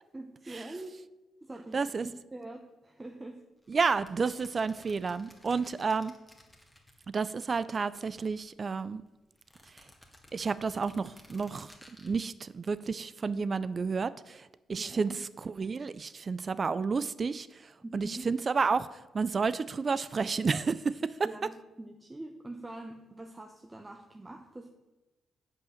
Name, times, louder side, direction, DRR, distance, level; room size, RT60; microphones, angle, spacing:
voice 1, 0.1-0.9 1.4-1.8 2.0-3.4 14.7-15.2 17.8-18.3 21.2-24.7, right 2 dB, 20° right, 4 dB, 0.9 m, -44 dB
voice 2, 1.7-2.1 3.7-6.1 7.1-9.0 9.7-9.8 10.3-21.3, right 5 dB, 45° right, 16 dB, 0.4 m, -31 dB
sound 1, 3.6-7.4 7.7-8.8 9.4-12.1, left 1 dB, 10° left, 2.0 m, -57 dB
7.9 x 5.6 x 6.4 m, 1.1 s
supercardioid pair, 50°, 0 cm